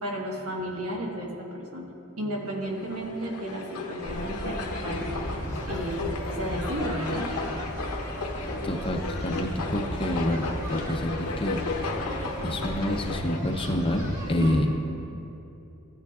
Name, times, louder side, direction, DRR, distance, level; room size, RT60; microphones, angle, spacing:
voice 1, 0.0-1.9 2.2-5.4 5.6-7.3 14.4-14.8, equal, 75° right, -2 dB, 1.5 m, -33 dB
sound 1, 2.6-13.4, left 3 dB, 90° left, 1.0 m, -34 dB
sound 2, 4.1-14.6, equal, 15° right, 1.4 m, -36 dB
voice 2, 8.6-11.6 12.4-14.7, left 1 dB, 25° left, 3 dB, 0.6 m, -28 dB
15.5 x 9.3 x 2.4 m, 2.9 s
head